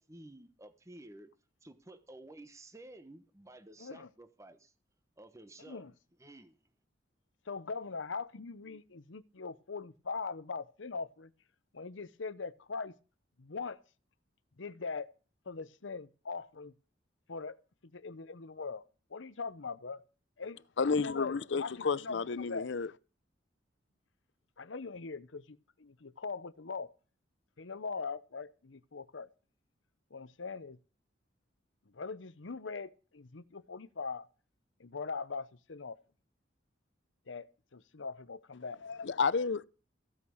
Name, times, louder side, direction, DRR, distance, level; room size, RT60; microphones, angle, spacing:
voice 1, 0.0-1.3 1.6-4.7 5.2-5.9 6.2-6.5, right 1 dB, 15° right, 1.0 m, -53 dB
voice 2, 3.8-4.1 5.6-5.9 7.5-11.3 11.7-12.9 13.4-13.8 14.6-15.1 15.5-16.7 17.3-17.6 17.9-18.8 19.1-20.0 20.4-22.7 24.6-26.9 27.6-29.3 30.1-30.8 31.9-34.3 34.8-36.0 37.3-38.8, left 4 dB, 85° left, 0.9 m, -41 dB
voice 3, 20.8-22.9 38.8-39.6, left 5 dB, 70° left, 0.6 m, -31 dB
15.0 x 8.7 x 6.3 m
head